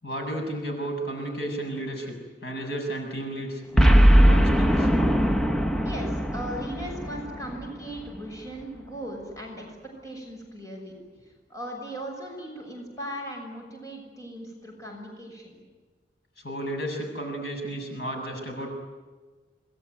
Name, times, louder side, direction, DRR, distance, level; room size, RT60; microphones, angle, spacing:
voice 1, 0.0-4.9 16.4-18.7, right 1 dB, 65° left, 2 dB, 7.3 m, -33 dB
Boom, 3.8-8.2, equal, 5° left, 0.9 m, -20 dB
voice 2, 5.8-9.8 10.0-10.9 11.5-15.6, equal, 20° left, 0 dB, 6.4 m, -38 dB
28.0 x 20.5 x 9.7 m, 1.3 s
head